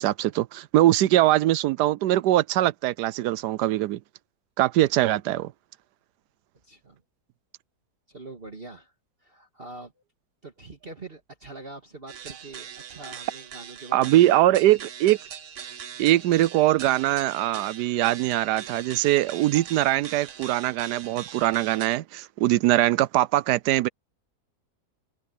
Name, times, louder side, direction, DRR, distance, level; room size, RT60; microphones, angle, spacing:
voice 1, 0.0-4.0 4.6-5.5 13.9-15.2 16.0-23.9, right 15 dB, 80° right, 1.1 m, -22 dB
voice 2, 6.6-7.0 8.1-8.9 9.2-9.9 10.4-14.8, right 3 dB, 35° right, 2.1 m, -43 dB
sound 1, 12.1-22.0, right 8 dB, 50° right, 1.2 m, -42 dB
open air
omnidirectional pair, 1.8 m